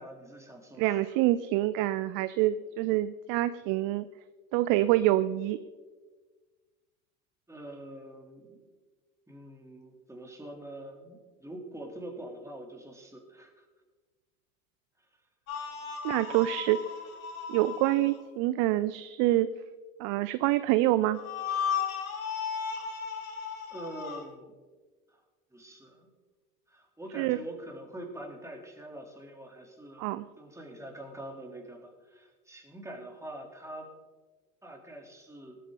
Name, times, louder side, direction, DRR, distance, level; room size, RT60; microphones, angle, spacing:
voice 1, 0.0-1.0 7.5-8.6 9.3-13.6 23.7-24.5 25.1-25.2 25.5-26.1 26.7-30.0 30.4-33.9 34.6-35.6, right 1 dB, 5° right, 1 dB, 3.2 m, -44 dB
voice 2, 0.8-4.1 4.5-5.6 16.0-16.9 17.5-19.5 20.0-21.2 27.2-27.4 30.0-30.3, right 15 dB, 50° right, 14 dB, 0.6 m, -26 dB
sound 1, 15.5-18.2 21.1-24.2, left 7 dB, 80° left, 2.6 m, -35 dB
19.5 x 9.3 x 3.9 m, 1.4 s
hypercardioid pair, 80°, 41 cm